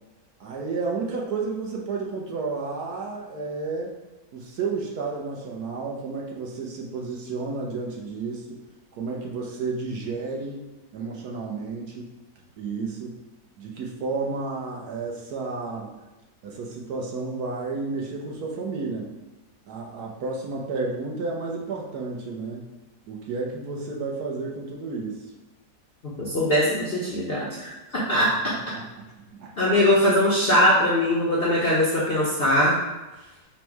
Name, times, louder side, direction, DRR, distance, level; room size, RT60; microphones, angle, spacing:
voice 1, 0.4-3.9 4.3-8.4 9.0-10.6 10.9-12.1 12.6-13.1 13.6-15.9 16.4-19.1 19.7-22.7 23.1-25.2 28.7-29.5, right 4 dB, 70° right, -2 dB, 1.1 m, -31 dB
voice 2, 26.0-28.5 29.6-32.7, left 1 dB, 60° left, -6 dB, 0.6 m, -21 dB
4.4 x 2.1 x 4.5 m, 1.1 s
omnidirectional pair, 1.9 m